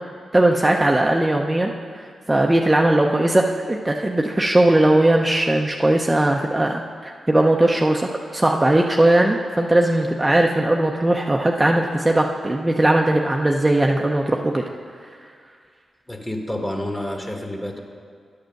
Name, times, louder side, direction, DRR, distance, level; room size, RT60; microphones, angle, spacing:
voice 1, 0.3-1.7 2.3-14.6, right 1 dB, 20° right, 1 dB, 0.6 m, -19 dB
voice 2, 16.1-17.8, left 1 dB, 15° left, 2 dB, 1.6 m, -29 dB
10.5 x 5.1 x 6.4 m, 2.2 s
supercardioid pair, 45°, 0 cm